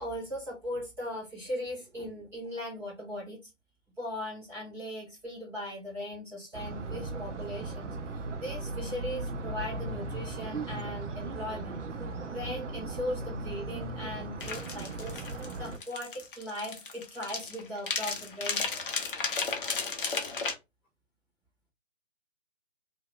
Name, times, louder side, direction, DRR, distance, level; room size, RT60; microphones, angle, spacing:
voice 1, 0.0-3.4 4.0-11.8 12.3-15.2 15.6-18.8, equal, 5° right, 1.2 m, -38 dB
sound 1, 6.5-15.8, right 2 dB, 70° right, 0.7 m, -37 dB
sound 2, 14.4-20.5, left 4 dB, 45° left, 0.8 m, -34 dB
3.0 x 2.8 x 3.1 m
figure-of-eight pair, 145°, 38 cm